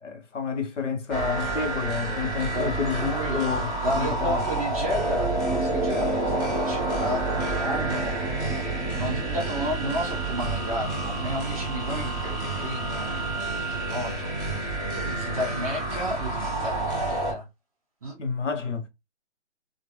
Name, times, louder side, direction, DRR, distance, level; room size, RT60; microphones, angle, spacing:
voice 1, 0.0-4.4 18.2-18.9, left 5 dB, 75° left, 0.9 m, -29 dB
sound 1, 1.1-17.3, right 2 dB, 15° left, 1.3 m, -28 dB
voice 2, 2.5-3.6 3.8-8.1 8.9-14.3 14.9-17.5 18.0-18.2, equal, 30° right, 1.2 m, -32 dB
3.0 x 2.4 x 3.0 m
hypercardioid pair, 175°, 37 cm